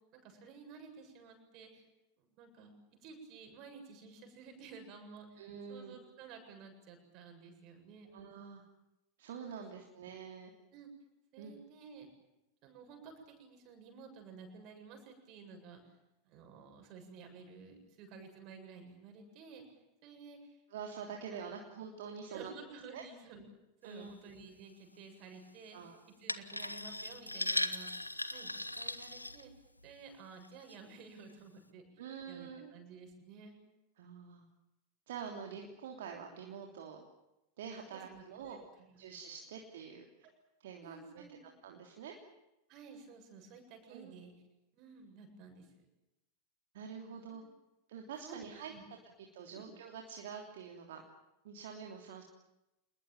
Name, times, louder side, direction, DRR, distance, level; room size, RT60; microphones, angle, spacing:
voice 1, 0.1-1.8 2.2-2.7 3.0-8.1 9.5-9.9 10.7-10.9 11.3-12.1 12.6-15.8 16.2-19.6 20.0-20.6 21.3-21.5 22.3-23.5 23.8-25.8 26.2-28.0 28.3-29.5 29.8-33.6 37.9-39.0 40.2-40.3 40.8-41.6 42.7-44.3 44.7-45.8 47.3-47.5 48.2-48.4 48.7-48.8 49.5-49.6, right 5 dB, 40° right, 4 dB, 7.7 m, -53 dB
voice 2, 5.4-6.0 8.1-8.6 9.2-10.5 11.4-11.5 20.7-22.5 22.9-23.0 23.8-24.2 25.7-26.0 32.0-32.7 34.0-34.4 35.1-37.1 37.6-38.6 39.0-40.3 40.6-41.4 41.6-42.2 43.9-44.1 46.7-47.4 47.9-48.7 49.3-51.0 51.4-52.2, right 7 dB, 55° right, 2 dB, 3.1 m, -46 dB
sound 1, 26.3-29.9 30.4-30.8 31.3-31.4, left 1 dB, 85° left, 1.2 m, -38 dB
27.5 x 21.0 x 9.1 m, 0.92 s
figure-of-eight pair, 90°, 0 cm